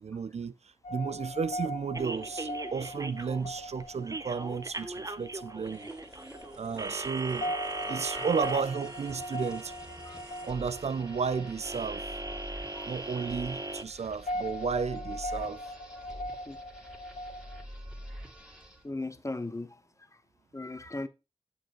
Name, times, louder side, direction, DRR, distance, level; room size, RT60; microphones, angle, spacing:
voice 1, 0.0-5.9 6.6-7.5 7.9-9.7 10.5-12.2 12.9-15.7, right 5 dB, 70° right, 0.4 m, -33 dB
sound 1, 0.8-17.6, equal, 80° left, 0.5 m, -40 dB
sound 2, 1.9-13.8, right 2 dB, 30° right, 0.8 m, -40 dB
sound 3, 5.7-18.9, equal, 5° right, 2.3 m, -47 dB
voice 2, 18.8-19.8 20.5-21.1, left 2 dB, 25° left, 0.9 m, -37 dB
7.9 x 6.7 x 2.9 m
cardioid pair, 45°, 12 cm